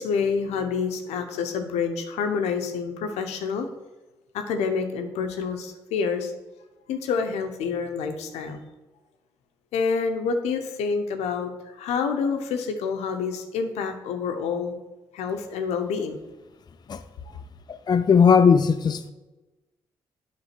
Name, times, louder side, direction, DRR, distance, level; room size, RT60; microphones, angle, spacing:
voice 1, 0.0-3.7 4.3-6.3 6.9-8.6 9.7-11.5 11.8-14.7 15.1-16.2, left 5 dB, 85° left, 6 dB, 0.7 m, -27 dB
voice 2, 17.7-19.1, left 6 dB, 40° left, 10 dB, 0.4 m, -18 dB
8.0 x 3.4 x 5.9 m, 1.1 s
supercardioid pair, 50°, 11 cm